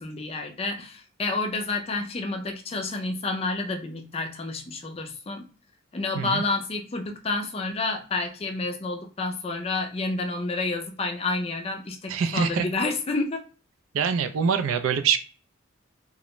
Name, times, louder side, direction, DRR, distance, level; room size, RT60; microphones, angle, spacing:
voice 1, 0.0-5.5 5.9-13.4, left 3 dB, 30° left, 4 dB, 0.4 m, -29 dB
voice 2, 12.1-12.7 13.9-15.2, right 6 dB, 75° right, 9 dB, 0.3 m, -24 dB
2.4 x 2.0 x 2.9 m, 0.38 s
head